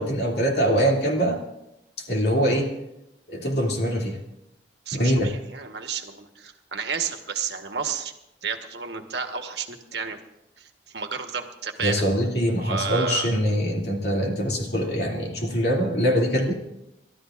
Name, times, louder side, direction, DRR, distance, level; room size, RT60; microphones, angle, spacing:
voice 1, 0.0-1.4 2.1-2.7 3.3-4.2 4.9-5.3 11.8-16.5, equal, 65° left, -1 dB, 2.6 m, -23 dB
voice 2, 4.9-8.1 8.4-10.2 10.6-12.0 12.6-13.3, right 6 dB, 70° right, 5 dB, 1.3 m, -32 dB
30.0 x 13.0 x 2.5 m, 0.86 s
head